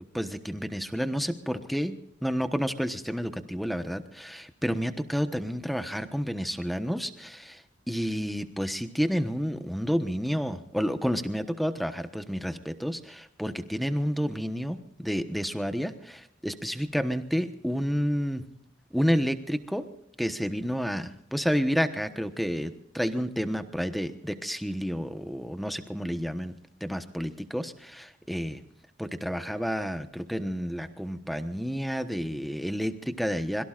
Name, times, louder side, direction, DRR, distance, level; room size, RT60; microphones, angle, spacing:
voice 1, 0.1-1.9 2.2-7.6 7.9-18.4 18.9-19.8 20.2-26.5 26.8-28.6 29.0-33.6, equal, ahead, 8 dB, 1.2 m, -30 dB
25.0 x 22.5 x 2.5 m, 0.74 s
head